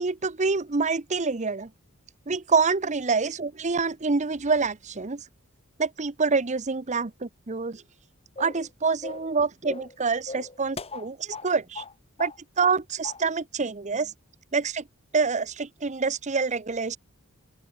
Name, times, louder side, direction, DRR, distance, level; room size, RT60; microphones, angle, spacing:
voice 1, 0.0-1.7 2.3-5.3 5.8-7.8 8.4-11.8 12.2-12.3 12.6-14.1 14.5-14.8 15.1-17.0, right 4 dB, 35° right, 0.8 m, -26 dB
sound 1, 8.4-8.7 9.0-9.3 9.6-10.0 10.3-11.5 11.7-11.9 12.2-12.8 13.0-13.2, left 3 dB, 30° left, 2.5 m, -38 dB
open air
head